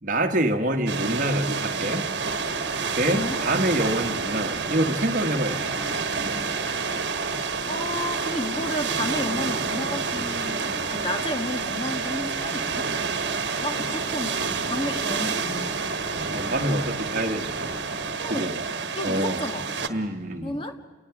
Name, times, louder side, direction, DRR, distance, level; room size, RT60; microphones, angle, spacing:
voice 1, 0.0-2.1 2.9-5.7 16.3-17.8 18.3-18.5 19.0-19.4 19.9-20.6, right 1 dB, 45° right, 2 dB, 1.4 m, -26 dB
sound 1, 0.9-19.9, right 4 dB, 70° right, 1.3 m, -29 dB
sound 2, 2.2-18.1, right 1 dB, ahead, 1.9 m, -44 dB
voice 2, 7.7-12.9 13.6-16.0 18.2-18.6 18.9-19.7 20.4-20.8, left 1 dB, 30° left, 6 dB, 1.6 m, -32 dB
29.5 x 19.0 x 6.0 m, 1.3 s
head